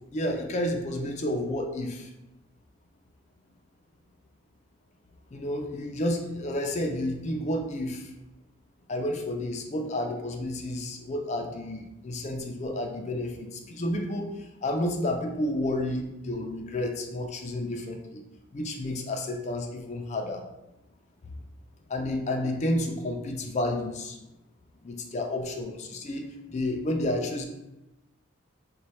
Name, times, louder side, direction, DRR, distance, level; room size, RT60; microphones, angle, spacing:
voice 1, 0.1-2.1 5.3-8.1 8.9-18.2 18.5-20.4 21.2-21.3 21.9-24.2 24.8-27.5, left 1 dB, 35° left, 3 dB, 0.4 m, -31 dB
3.0 x 2.2 x 4.1 m, 0.97 s
head